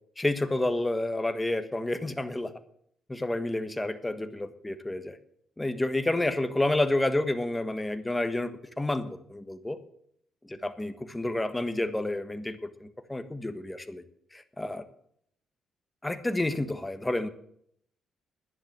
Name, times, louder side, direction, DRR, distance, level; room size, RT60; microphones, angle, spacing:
voice 1, 0.2-2.5 3.1-5.2 5.6-8.5 8.8-9.8 10.4-14.0 14.3-14.8 16.0-17.3, left 2 dB, 10° left, 10 dB, 1.4 m, -29 dB
10.5 x 10.5 x 7.5 m, 0.68 s
cardioid pair, 90°, 0 cm